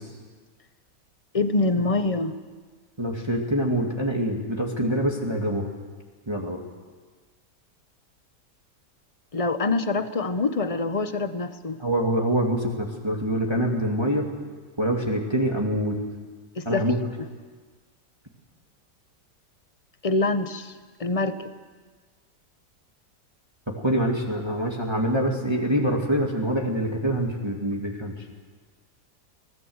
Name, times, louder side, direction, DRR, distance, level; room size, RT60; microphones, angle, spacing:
voice 1, 1.3-2.3 9.3-11.8 16.6-16.9 20.0-20.7 21.0-21.4, left 3 dB, 25° left, 10 dB, 0.8 m, -25 dB
voice 2, 3.0-5.7 6.3-6.6 11.8-14.3 14.8-16.0 16.7-17.0 23.7-28.1, right 1 dB, 15° right, 0 dB, 2.3 m, -25 dB
24.5 x 18.5 x 8.0 m, 1.4 s
omnidirectional pair, 1.9 m